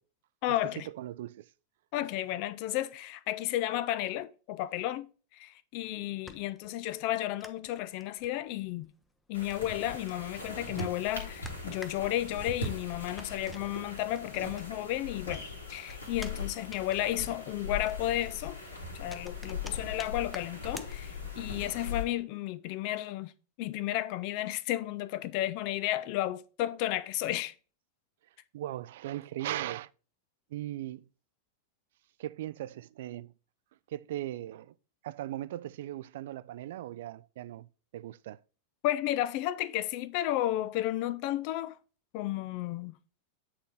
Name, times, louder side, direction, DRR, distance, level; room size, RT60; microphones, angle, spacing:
voice 1, 0.4-0.9 1.9-5.1 5.3-8.9 9.3-18.6 18.9-23.3 23.6-27.5 38.8-41.8 42.1-43.0, left 14 dB, 45° left, 0.4 m, -33 dB
voice 2, 1.0-1.5 28.5-29.9 30.5-31.1 32.2-33.3 33.9-34.7 35.0-37.7 37.9-38.4, right 13 dB, 55° right, 0.3 m, -38 dB
sound 1, 5.8-15.0 15.3-21.5, left 2 dB, 5° left, 0.7 m, -52 dB
sound 2, 9.3-22.0, left 4 dB, 75° left, 1.8 m, -40 dB
8.5 x 3.9 x 3.4 m
figure-of-eight pair, 90°, 0 cm